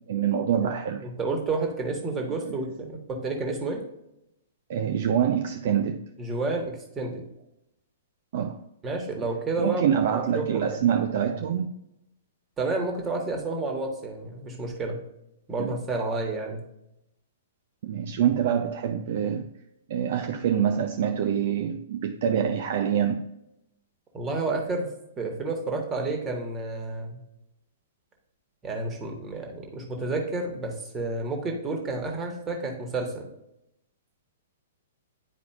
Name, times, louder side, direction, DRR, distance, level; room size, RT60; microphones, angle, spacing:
voice 1, 0.1-1.1 4.7-6.0 8.3-8.6 9.6-11.7 15.6-15.7 17.8-19.5 19.9-23.2, right 8 dB, 50° right, 0.5 m, -25 dB
voice 2, 0.6-3.8 6.2-7.2 8.8-10.8 12.6-15.0 15.5-16.6 24.1-24.9 25.2-27.2 28.6-33.3, right 3 dB, 20° right, 1.4 m, -30 dB
9.8 x 4.7 x 2.4 m
figure-of-eight pair, 110°, 0 cm